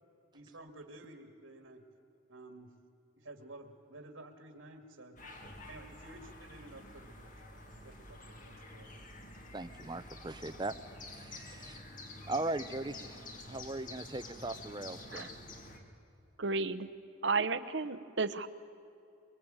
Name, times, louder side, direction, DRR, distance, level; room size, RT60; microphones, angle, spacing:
voice 1, 0.3-1.8 2.3-2.7 3.2-5.2 5.7-8.9, right 2 dB, 90° right, 5 dB, 2.2 m, -52 dB
sound 1, 5.2-15.8, left 2 dB, 40° left, 2.4 m, -49 dB
voice 2, 9.5-10.7 11.1-11.8 12.3-15.3, right 2 dB, 20° right, 12 dB, 0.7 m, -39 dB
voice 3, 16.4-16.9 17.2-18.5, right 4 dB, 65° right, 13 dB, 1.0 m, -33 dB
24.0 x 23.5 x 9.0 m, 2.7 s
head